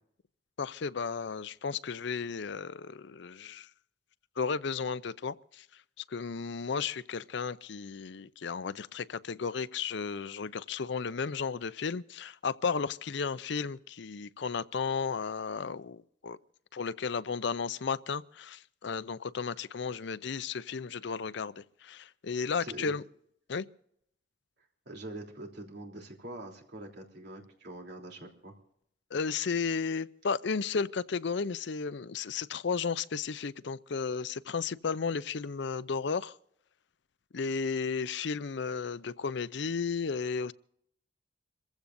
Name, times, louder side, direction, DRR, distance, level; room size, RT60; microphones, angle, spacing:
voice 1, 0.6-3.7 4.4-5.6 6.1-16.4 16.7-23.0 23.5-23.7 29.1-36.4 37.3-40.5, left 5 dB, 60° left, 0.5 m, -34 dB
voice 2, 22.6-22.9 24.8-28.5, right 1 dB, 55° right, 3.3 m, -44 dB
27.0 x 15.5 x 2.6 m
head